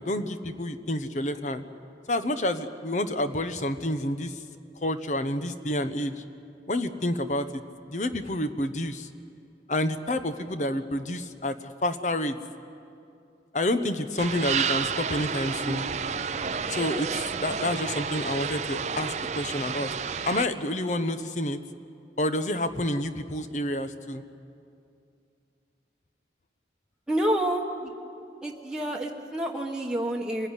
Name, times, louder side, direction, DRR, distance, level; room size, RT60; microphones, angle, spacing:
voice 1, 0.0-1.6 2.1-4.4 4.8-6.1 6.7-7.6 7.9-9.1 9.7-11.6 11.8-12.4 13.5-15.8 16.7-19.9 20.2-21.6 22.2-24.2, left 1 dB, 40° left, 10 dB, 0.9 m, -29 dB
sound 1, 14.2-20.5, right 6 dB, 40° right, 0.6 m, -30 dB
voice 2, 27.1-27.9 28.4-30.5, right 1 dB, 5° right, -2 dB, 1.3 m, -28 dB
25.0 x 16.0 x 9.9 m, 2.5 s
head